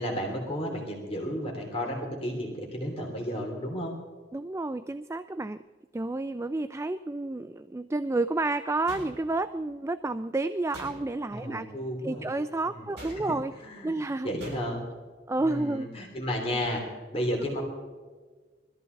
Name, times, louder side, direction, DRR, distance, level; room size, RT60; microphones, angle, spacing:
voice 1, 0.0-3.9 11.3-12.3 12.7-12.9 13.2-13.3 13.6-13.9 14.2-14.8 15.4-16.8 17.1-17.6, equal, 30° left, -1 dB, 3.3 m, -32 dB
voice 2, 4.3-5.6 5.9-11.7 12.0-13.5 13.8-14.3 15.3-15.9, right 2 dB, 15° right, 12 dB, 0.3 m, -30 dB
sound 1, 8.9-9.6 10.7-11.4 13.0-13.5 14.4-14.9, right 1 dB, 60° right, 6.6 m, -45 dB
22.0 x 14.0 x 4.0 m, 1.4 s
head